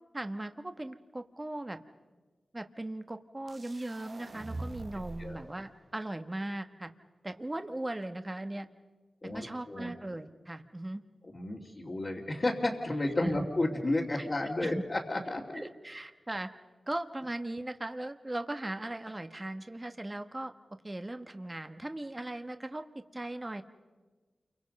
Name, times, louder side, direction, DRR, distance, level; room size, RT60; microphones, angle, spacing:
voice 1, 0.1-1.8 2.5-6.9 7.2-8.7 9.3-11.0 13.2-13.5 14.2-14.3 14.6-14.8 15.5-16.5 16.9-20.5 20.8-23.6, right 1 dB, 25° right, 8 dB, 1.3 m, -38 dB
sound 1, 3.5-5.4, right 2 dB, 50° right, 1.1 m, -43 dB
voice 2, 9.2-9.9 11.3-15.6, left 2 dB, 45° left, -5 dB, 2.7 m, -32 dB
28.5 x 24.0 x 5.4 m, 1.3 s
cardioid pair, 45°, 0 cm